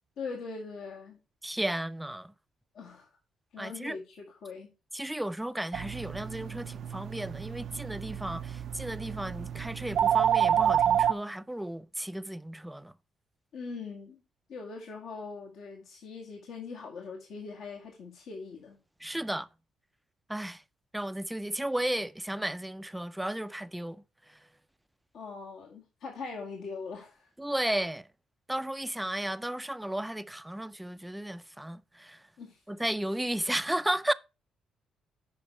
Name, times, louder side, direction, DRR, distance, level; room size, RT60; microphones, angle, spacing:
voice 1, 0.2-1.2 2.7-3.1 3.5-4.7 13.5-14.2 14.5-18.8 25.1-27.3 32.4-32.6, left 4 dB, 75° left, 1.9 m, -41 dB
voice 2, 1.4-2.3 3.6-4.0 4.9-12.9 19.0-19.5 20.3-20.6 20.9-24.0 24.3-24.4 27.4-28.1 28.5-32.2 32.7-34.1, right 1 dB, 5° right, 0.4 m, -34 dB
sound 1, 5.7-11.1, right 9 dB, 65° right, 0.5 m, -29 dB
8.7 x 5.2 x 4.6 m
cardioid pair, 90°, 0 cm